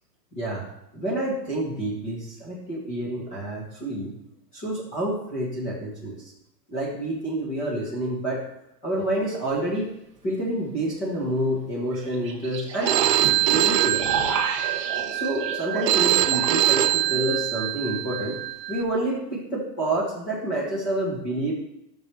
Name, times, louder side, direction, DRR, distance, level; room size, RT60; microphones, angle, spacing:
voice 1, 0.3-0.6 0.9-4.1 4.5-6.2 6.7-8.4 8.8-9.9 10.2-13.0 13.4-14.0 15.1-18.4 18.7-21.5, right 1 dB, 15° left, -5 dB, 1.4 m, -28 dB
sound 1, 9.0-9.1 11.9-17.4, right 5 dB, 20° right, 0.7 m, -32 dB
Telephone, 12.9-18.8, right 14 dB, 75° right, 0.8 m, -24 dB
13.0 x 6.4 x 3.4 m, 0.83 s
hypercardioid pair, 175°, 50 cm